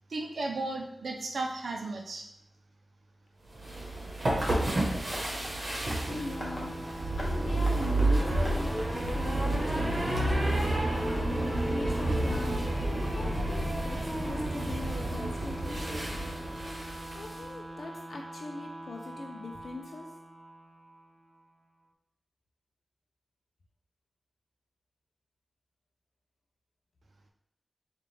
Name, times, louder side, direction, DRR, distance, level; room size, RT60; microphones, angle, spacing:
voice 1, 0.1-2.3, right 2 dB, 85° right, 2 dB, 0.6 m, -34 dB
sound 1, 3.5-17.4, right 1 dB, 50° right, 1.1 m, -30 dB
Tap, 4.7-10.1, equal, 10° left, 1.1 m, -45 dB
voice 2, 6.1-6.8 7.2-10.0 11.0-15.9 17.1-20.1, left 2 dB, 75° left, 2 dB, 0.4 m, -41 dB
sound 2, 6.1-21.4, right 1 dB, 30° right, 0.4 m, -42 dB
4.7 x 2.4 x 3.4 m, 0.79 s
wide cardioid pair, 95°, 0 cm